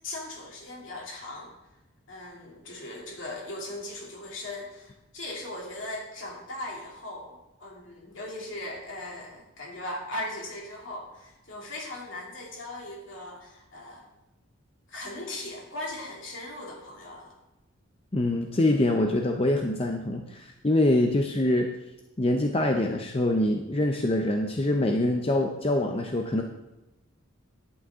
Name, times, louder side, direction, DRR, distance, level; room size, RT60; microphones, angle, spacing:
voice 1, 0.0-1.5 2.1-14.0 14.9-17.3, left 1 dB, 65° left, -2 dB, 2.9 m, -38 dB
voice 2, 18.1-21.7 22.2-26.4, left 1 dB, 30° left, 3 dB, 0.6 m, -24 dB
11.0 x 9.0 x 3.7 m, 0.99 s
head